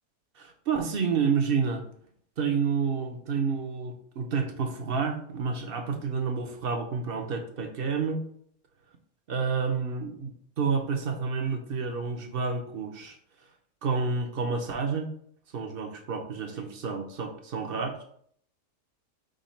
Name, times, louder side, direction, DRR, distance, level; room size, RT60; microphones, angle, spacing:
voice 1, 0.4-1.8 2.4-8.2 9.3-10.3 10.6-13.2 13.8-15.1 15.5-18.0, right 5 dB, 55° right, 4 dB, 0.8 m, -29 dB
5.1 x 2.3 x 4.1 m, 0.62 s
omnidirectional pair, 1.3 m